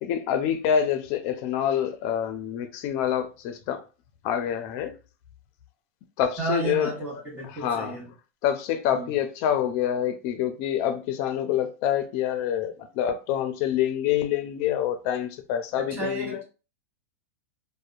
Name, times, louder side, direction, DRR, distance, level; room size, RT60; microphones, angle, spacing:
voice 1, 0.0-3.8 4.2-5.0 6.2-7.2 7.5-8.0 8.4-16.4, left 9 dB, 50° left, 0.5 m, -26 dB
voice 2, 6.4-8.0 8.9-9.1 15.9-16.4, right 3 dB, 25° right, 1.2 m, -32 dB
2.7 x 2.1 x 2.4 m
hypercardioid pair, 125°, 8 cm